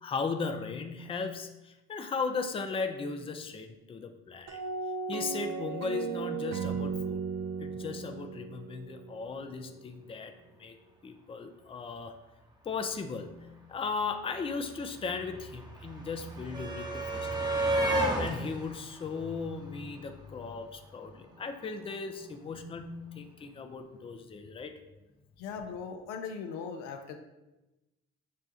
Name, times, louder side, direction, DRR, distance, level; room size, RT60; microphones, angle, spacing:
voice 1, 0.0-4.6 5.1-7.2 7.6-10.8 11.0-12.2 12.6-17.7 18.0-24.7, left 4 dB, 20° left, 6 dB, 0.4 m, -37 dB
sound 1, 4.5-9.6, right 5 dB, 60° right, 0.5 m, -36 dB
sound 2, 13.7-13.8 14.0-20.2 21.4-21.5 21.8-21.9, right 1 dB, 15° right, 0.8 m, -33 dB
voice 2, 25.4-27.2, left 6 dB, 80° left, 6 dB, 0.5 m, -39 dB
6.2 x 2.2 x 2.7 m, 1.0 s
hypercardioid pair, 50°, 30 cm